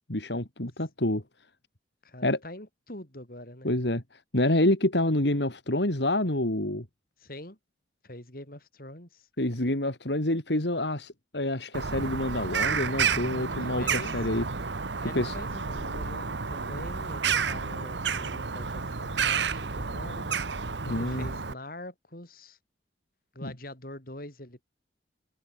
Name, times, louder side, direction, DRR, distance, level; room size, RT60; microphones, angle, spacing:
voice 1, 0.1-1.2 2.2-2.4 3.6-4.0 4.3-6.8 9.4-14.4 15.1-15.3 20.9-21.3 23.4-23.5, left 1 dB, 75° left, 3.4 m, -27 dB
voice 2, 2.0-3.7 7.2-7.6 8.0-9.3 13.6-14.3 15.0-20.3 20.9-22.6 23.3-24.6, left 1 dB, 55° left, 5.8 m, -44 dB
Bird vocalization bird call bird song, 11.7-21.5, right 5 dB, 80° right, 1.2 m, -30 dB
head